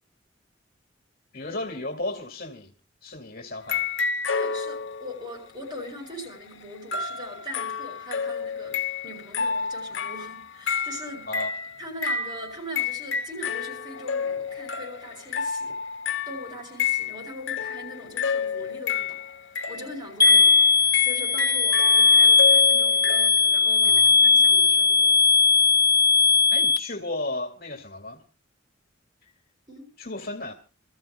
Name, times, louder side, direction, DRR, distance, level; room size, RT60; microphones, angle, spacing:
voice 1, 1.3-2.7 3.0-3.9 11.3-11.5 23.8-24.2 26.5-28.2 30.0-30.5, left 2 dB, 50° left, 2.2 m, -34 dB
sound 1, 3.6-5.2 6.9-23.3, left 6 dB, 75° left, 0.9 m, -30 dB
voice 2, 4.3-11.3 11.8-15.8 16.3-19.2 19.7-20.6 21.0-25.2 29.7-29.9, left 1 dB, 25° right, 7.7 m, -40 dB
sound 2, 20.2-26.8, left 4 dB, 20° left, 1.0 m, -18 dB
29.0 x 14.0 x 2.2 m
head